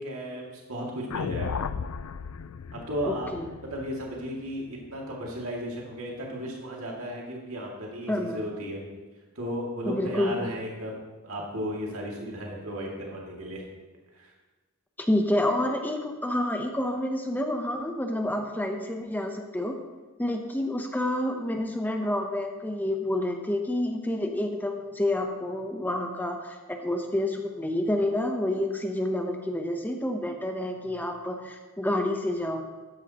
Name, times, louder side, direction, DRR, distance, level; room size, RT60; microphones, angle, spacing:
voice 1, 0.0-1.6 2.7-3.3 3.7-8.8 9.4-11.0 11.2-13.6 14.1-14.3, equal, 70° right, -2 dB, 2.3 m, -35 dB
sound 1, 1.1-5.4, left 6 dB, 75° left, 0.4 m, -35 dB
voice 2, 3.0-3.5 8.1-8.4 9.8-10.3 15.0-19.8 20.2-32.7, left 1 dB, 10° left, 3 dB, 0.8 m, -28 dB
13.5 x 10.5 x 2.9 m, 1.3 s
head